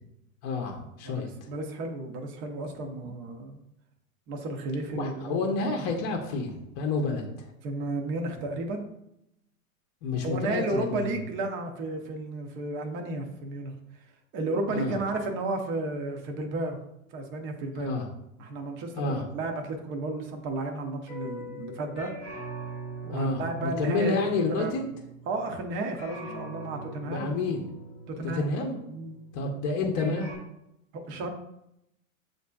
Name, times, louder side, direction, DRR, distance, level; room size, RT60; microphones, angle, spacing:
voice 1, 0.4-1.3 4.9-7.5 10.0-11.1 14.7-14.9 17.8-18.1 19.0-19.2 23.1-24.9 27.1-27.6 28.3-28.7 29.3-30.3, left 3 dB, 40° left, 2 dB, 0.7 m, -29 dB
voice 2, 1.0-3.6 4.3-5.4 7.6-8.9 10.2-13.7 14.3-16.8 17.1-17.9 18.4-22.1 23.0-24.1 24.5-24.8 25.3-27.3 28.1-28.5 28.9-29.2 30.9-31.3, right 2 dB, 30° right, 3 dB, 0.6 m, -33 dB
sound 1, 21.1-25.7 25.9-29.5 29.9-30.4, right 2 dB, 15° left, 1.1 m, -42 dB
7.2 x 2.6 x 2.3 m, 0.83 s
hypercardioid pair, 120°, 43 cm